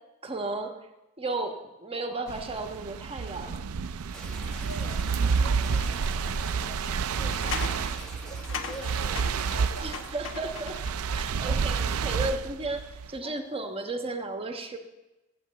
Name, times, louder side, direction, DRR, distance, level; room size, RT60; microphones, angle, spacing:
voice 1, 0.2-0.7 1.2-3.6 9.8-10.8 11.1-14.8, right 2 dB, 25° right, 5 dB, 1.2 m, -34 dB
sound 1, 2.3-13.2, right 5 dB, 65° right, 0.4 m, -30 dB
sound 2, 4.1-10.1, right 1 dB, 5° left, 1.4 m, -46 dB
voice 2, 4.6-6.8 7.1-10.1 13.2-13.4, equal, 45° left, 2 dB, 2.3 m, -45 dB
sound 3, 5.7-5.8 7.3-11.2 11.6-12.4, left 5 dB, 60° left, 1.1 m, -40 dB
14.5 x 7.9 x 7.6 m, 1.0 s
head